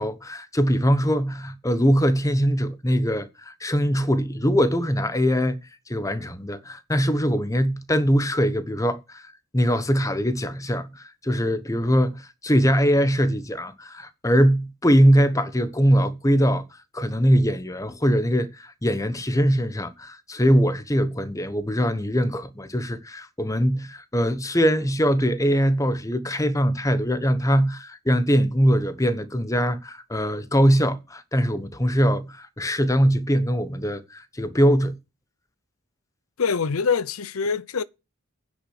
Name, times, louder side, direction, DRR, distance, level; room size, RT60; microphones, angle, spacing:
voice 1, 0.0-5.6 5.9-9.3 9.5-16.6 16.9-34.9, equal, 15° left, 1.2 m, -22 dB
voice 2, 36.4-37.8, left 5 dB, 85° left, 0.7 m, -24 dB
9.8 x 8.5 x 6.5 m
head